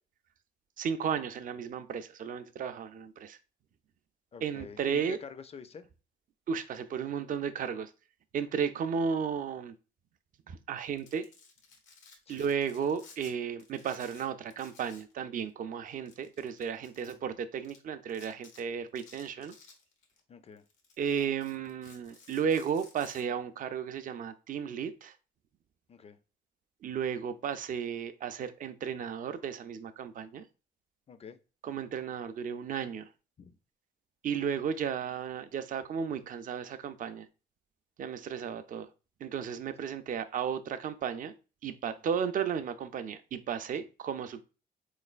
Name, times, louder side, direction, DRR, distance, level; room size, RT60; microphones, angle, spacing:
voice 1, 0.8-3.4 4.4-5.2 6.5-7.9 8.3-9.7 10.5-11.3 12.3-19.5 21.0-25.1 26.8-30.5 31.6-33.1 34.2-37.3 38.0-38.9 39.2-41.4 41.6-44.4, right 7 dB, 45° right, 0.4 m, -34 dB
voice 2, 4.3-5.8 12.3-12.5 17.0-17.2 20.3-20.6 25.9-26.2 31.1-31.4 33.4-33.6, left 6 dB, 30° left, 0.4 m, -47 dB
Domestic sounds home sounds, 10.8-13.3 13.6-15.1 15.4-15.5 16.1-17.1 17.6-17.8 18.1-18.6 19.0-20.2 20.6-23.2, left 4 dB, 90° left, 1.0 m, -56 dB
3.7 x 3.2 x 2.4 m
cardioid pair, 90°, 20 cm